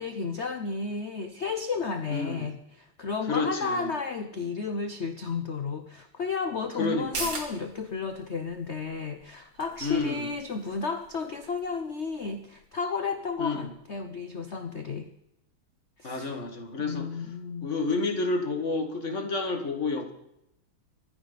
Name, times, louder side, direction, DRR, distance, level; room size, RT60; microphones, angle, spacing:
voice 1, 0.0-15.1 16.0-16.4 16.8-17.7, left 4 dB, 50° left, 8 dB, 0.8 m, -33 dB
voice 2, 2.1-2.5 3.3-3.9 6.8-7.3 9.8-10.3 13.4-13.7 16.0-17.1 17.6-20.1, left 3 dB, 35° left, 4 dB, 2.1 m, -30 dB
sound 1, 6.9-14.1 14.4-14.5, right 3 dB, 90° right, 3.3 m, -43 dB
24.0 x 10.0 x 4.1 m, 0.83 s
omnidirectional pair, 2.3 m